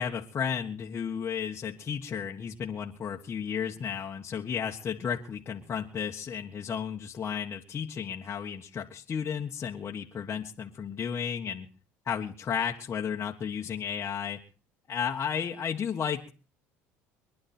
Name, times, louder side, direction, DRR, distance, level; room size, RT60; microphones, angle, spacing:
voice 1, 0.0-11.7 12.0-14.4 14.9-16.3, left 7 dB, 40° left, 0 dB, 1.6 m, -33 dB
23.5 x 11.0 x 4.4 m, 0.39 s
supercardioid pair, 85°, 7 cm